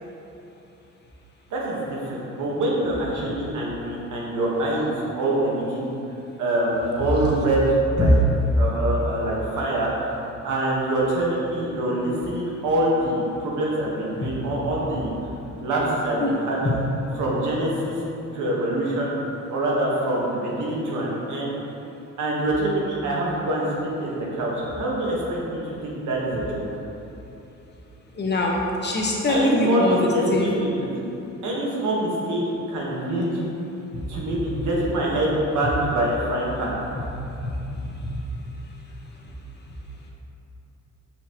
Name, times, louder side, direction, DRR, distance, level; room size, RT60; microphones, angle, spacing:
voice 1, 1.5-5.9 6.4-7.6 7.9-8.1 8.6-9.9 10.4-15.1 15.6-16.8 17.2-18.0 18.3-19.1 19.5-21.5 22.2-26.6 29.3-30.9 31.4-33.4 34.1-36.7, right 1 dB, 80° right, -4 dB, 1.5 m, -25 dB
voice 2, 28.2-30.5 33.9-34.0 37.4-37.5 37.8-38.1, left 1 dB, 35° left, -2 dB, 1.1 m, -22 dB
5.9 x 5.8 x 3.0 m, 2.9 s
cardioid pair, 90°, 30 cm